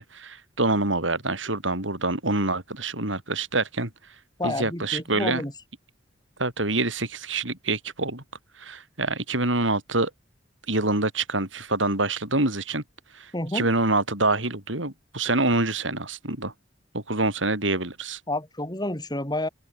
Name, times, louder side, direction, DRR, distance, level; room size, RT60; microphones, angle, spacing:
voice 1, 0.0-3.9 4.4-5.4 6.4-8.2 8.6-10.1 10.7-12.8 13.1-16.5 16.9-18.2, right 2 dB, 85° right, 6.4 m, -26 dB
voice 2, 4.4-5.5 13.3-13.7 18.3-19.5, left 1 dB, 20° left, 7.2 m, -29 dB
open air
head